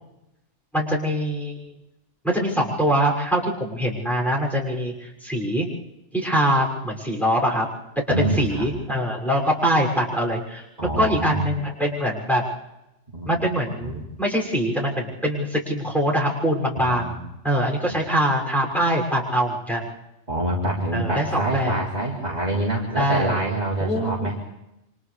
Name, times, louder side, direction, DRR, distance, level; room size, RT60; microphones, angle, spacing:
voice 1, 0.7-1.7 2.2-5.7 6.1-7.7 8.2-12.4 13.2-17.2 17.4-19.9 20.9-21.8 23.0-23.4 23.8-24.3, equal, ahead, -3 dB, 6.6 m, -23 dB
voice 2, 8.1-8.7 10.8-11.5 13.1-13.4 13.8-14.0 16.8-17.2 20.3-24.4, right 1 dB, 35° right, -4 dB, 3.2 m, -26 dB
30.0 x 26.5 x 3.4 m, 0.88 s
omnidirectional pair, 1.3 m